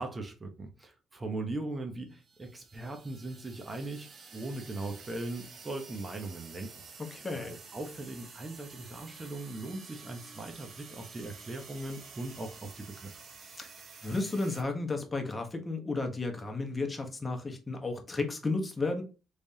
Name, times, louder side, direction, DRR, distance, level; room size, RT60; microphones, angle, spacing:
voice 1, 0.0-6.7 7.0-13.2, right 2 dB, 25° right, 0.9 m, -39 dB
sound 1, 2.2-14.6, right 5 dB, 55° right, 0.9 m, -50 dB
voice 2, 7.1-7.5 13.6-13.7 14.0-19.0, left 3 dB, 25° left, 1.0 m, -33 dB
3.3 x 3.3 x 2.8 m
cardioid pair, 90°, 0 cm